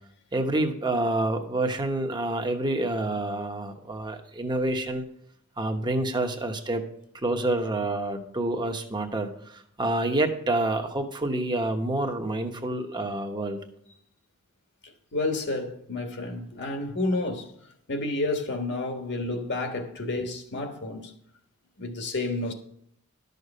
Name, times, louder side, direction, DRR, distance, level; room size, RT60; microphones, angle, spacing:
voice 1, 0.3-5.0 5.6-6.8 7.1-13.6, right 2 dB, 20° right, 1.1 m, -28 dB
voice 2, 14.8-17.5 17.9-21.1 21.8-22.5, left 2 dB, 55° left, 1.6 m, -30 dB
12.0 x 6.7 x 5.5 m
head